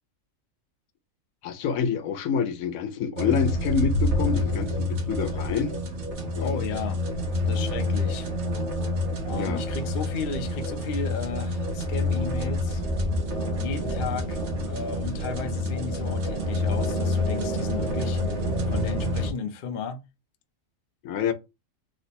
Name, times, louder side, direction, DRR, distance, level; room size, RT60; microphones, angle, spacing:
voice 1, 1.4-5.8 6.3-6.6 9.3-9.6 21.0-21.3, left 6 dB, 85° left, 1.0 m, -27 dB
sound 1, 3.2-19.3, left 1 dB, 65° right, 1.0 m, -27 dB
voice 2, 6.4-7.0 7.5-8.3 9.2-12.8 13.5-18.2 18.7-20.0, left 5 dB, 60° left, 0.6 m, -34 dB
3.0 x 2.0 x 4.1 m
omnidirectional pair, 1.4 m